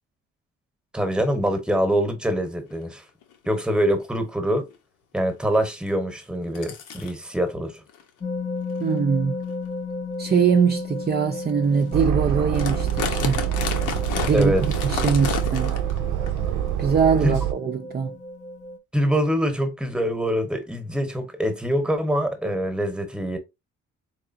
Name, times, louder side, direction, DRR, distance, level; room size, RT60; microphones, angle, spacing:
voice 1, 0.9-3.0 3.5-4.7 5.1-7.8 14.3-14.6 17.2-17.3 18.9-23.4, equal, 5° right, 1.0 m, -24 dB
sound 1, 2.7-2.8 3.2-3.5 4.0-4.1 4.5-4.8 5.9-6.0 6.5-7.1 7.9-8.0 8.6-8.8 9.4-9.5 10.2-10.4 11.0-11.1 11.5-11.6 11.7-12.0 12.3-16.0 16.3-16.4 17.2-17.3, left 7 dB, 80° left, 0.9 m, -31 dB
sound 2, 8.2-18.8, left 3 dB, 25° left, 0.6 m, -34 dB
voice 2, 8.8-9.4 10.2-13.4 14.3-15.8 16.8-18.2, right 6 dB, 35° right, 0.5 m, -22 dB
Aircraft, 11.9-17.5, right 11 dB, 85° right, 0.6 m, -26 dB
3.8 x 3.2 x 2.6 m
cardioid pair, 90°, 30 cm